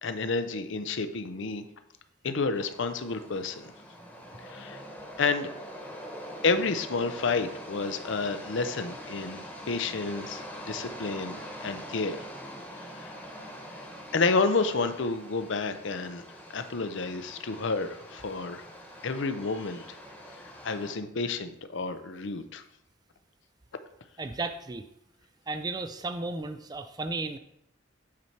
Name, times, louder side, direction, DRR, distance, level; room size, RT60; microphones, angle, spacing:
voice 1, 0.0-1.6 2.2-3.7 4.4-4.8 5.2-5.5 6.4-12.3 12.7-13.1 14.1-16.2 16.5-18.6 19.0-19.8 20.6-22.6, left 4 dB, 65° left, 9 dB, 0.6 m, -30 dB
sound 1, 2.5-20.9, equal, 10° left, 1.1 m, -44 dB
voice 2, 24.2-24.8 25.5-27.4, right 3 dB, 20° right, 9 dB, 0.3 m, -34 dB
8.6 x 4.2 x 4.5 m, 0.80 s
head